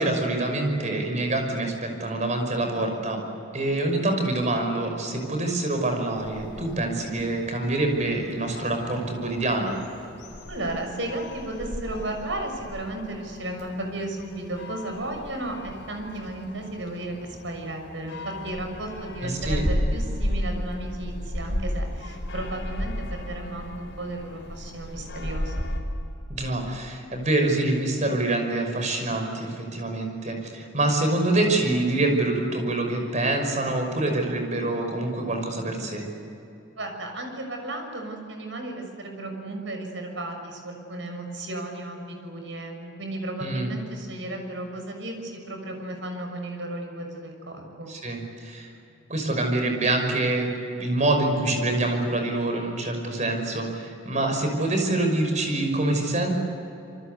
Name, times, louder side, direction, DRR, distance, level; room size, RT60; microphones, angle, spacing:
voice 1, 0.0-3.2 3.5-9.8 19.2-19.6 26.3-36.0 43.4-43.7 47.9-48.7 49.1-50.5 50.8-56.4, right 2 dB, 40° right, 4 dB, 5.7 m, -26 dB
sound 1, 6.1-25.8, equal, 70° left, 4.9 m, -34 dB
voice 2, 10.5-17.2 17.4-25.5 36.8-47.9, right 1 dB, 70° right, 4 dB, 6.4 m, -34 dB
27.5 x 24.0 x 8.3 m, 2.8 s
head